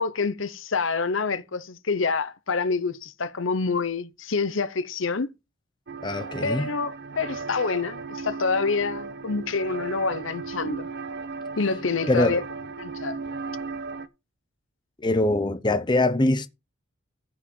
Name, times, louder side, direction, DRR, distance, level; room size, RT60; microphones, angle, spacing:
voice 1, 0.0-5.3 6.4-10.9 11.6-12.4 12.8-13.2, left 4 dB, 70° left, 0.9 m, -27 dB
sound 1, 5.9-14.1, right 4 dB, 55° right, 1.0 m, -36 dB
voice 2, 6.0-6.7 12.1-12.4 15.0-16.5, left 2 dB, 20° left, 0.8 m, -23 dB
14.5 x 5.1 x 5.5 m
head